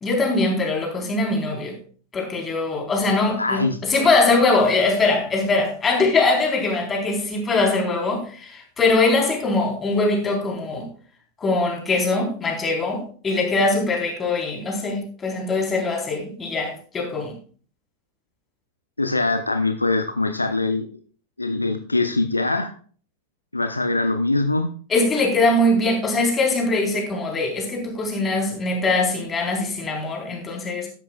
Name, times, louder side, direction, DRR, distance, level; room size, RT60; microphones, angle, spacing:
voice 1, 0.0-1.7 2.1-10.9 11.4-17.3 24.9-30.9, left 2 dB, 20° left, 1 dB, 3.9 m, -22 dB
voice 2, 3.4-3.8 19.0-20.9 21.4-22.7 23.5-24.7, left 2 dB, 85° left, 7 dB, 0.8 m, -22 dB
13.5 x 11.0 x 2.3 m, 0.43 s
figure-of-eight pair, 90°, 0 cm